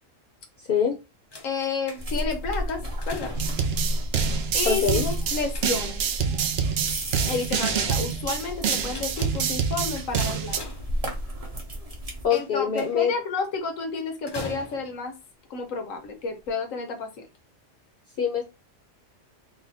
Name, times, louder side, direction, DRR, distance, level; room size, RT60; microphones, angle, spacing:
sound 1, 1.3-2.4 2.8-3.8 5.1-6.1 7.1-8.4 8.8-9.6 10.3-11.3 12.3-13.1 14.3-15.1 15.9-16.1 16.4-16.5, left 3 dB, 30° left, 0.5 m, -41 dB
voice 1, 1.4-3.4 4.5-6.0 7.2-10.7 12.3-15.1 15.5-17.2, left 4 dB, 90° left, 1.4 m, -31 dB
sound 2, 2.0-12.2, equal, 30° right, 0.9 m, -33 dB
sound 3, 3.4-10.6, right 7 dB, 60° right, 0.8 m, -27 dB
voice 2, 4.7-5.0 12.2-13.1 18.2-18.4, left 7 dB, 55° left, 0.8 m, -23 dB
4.1 x 2.2 x 4.1 m
omnidirectional pair, 1.3 m